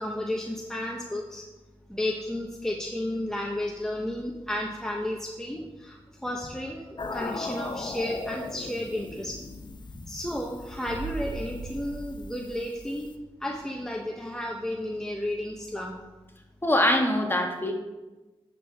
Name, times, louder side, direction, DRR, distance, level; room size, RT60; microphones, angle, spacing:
voice 1, 0.0-1.5 1.9-9.4 10.1-13.1 13.4-16.0, left 1 dB, 5° left, 0 dB, 1.0 m, -32 dB
sound 1, 7.0-13.1, left 3 dB, 50° left, 0.7 m, -39 dB
sound 2, 10.8-13.5 13.8-13.9, right 4 dB, 75° right, 1.6 m, -40 dB
voice 2, 16.6-17.7, left 1 dB, 20° left, 2 dB, 1.5 m, -23 dB
10.0 x 6.4 x 3.5 m, 1.1 s
cardioid pair, 55°, 10 cm